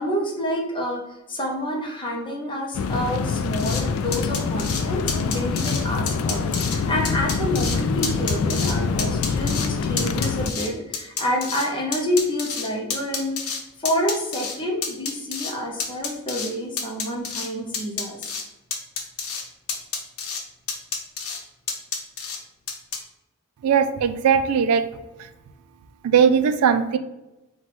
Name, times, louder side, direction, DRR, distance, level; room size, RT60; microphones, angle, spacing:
voice 1, 0.0-13.4 13.8-18.3, equal, 25° left, 0 dB, 0.6 m, -28 dB
sound 1, 2.7-10.5, left 5 dB, 70° left, 0.3 m, -25 dB
sound 2, 3.6-3.8 4.1-4.8 5.1-5.8 6.1-6.8 7.0-7.8 8.0-8.7 9.0-9.7 10.0-11.7 11.9-13.6 13.8-14.6 14.8-15.5 15.8-16.5 16.8-17.5 17.7-18.4 18.7-19.4 19.7-20.4 20.7-21.4 21.7-22.4 22.7-23.0, left 5 dB, 85° left, 0.8 m, -29 dB
voice 2, 23.6-24.8 25.2-25.3 26.0-27.0, right 7 dB, 90° right, 10 dB, 0.3 m, -19 dB
4.4 x 2.2 x 4.1 m, 0.99 s
head